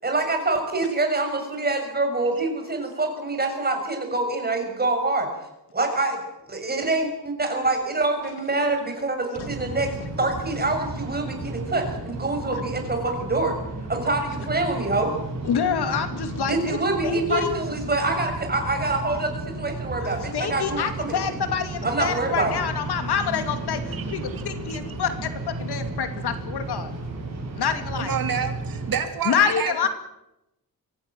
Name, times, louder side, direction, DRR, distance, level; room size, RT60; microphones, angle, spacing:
voice 1, 0.0-5.3 5.7-6.2 6.5-13.5 13.9-15.1 16.4-19.3 19.6-21.4 21.8-22.5, right 2 dB, 25° right, 4 dB, 6.6 m, -25 dB
sound 1, 9.3-29.0, right 2 dB, 45° right, 7.2 m, -33 dB
voice 2, 15.4-17.6 20.3-26.9 27.6-28.1 29.2-29.9, left 7 dB, 75° left, 8 dB, 2.7 m, -27 dB
voice 3, 23.9-24.4 24.7-24.8 28.0-29.9, right 7 dB, 60° right, 6 dB, 3.0 m, -30 dB
24.0 x 17.0 x 9.3 m, 0.91 s
wide cardioid pair, 155°, 39 cm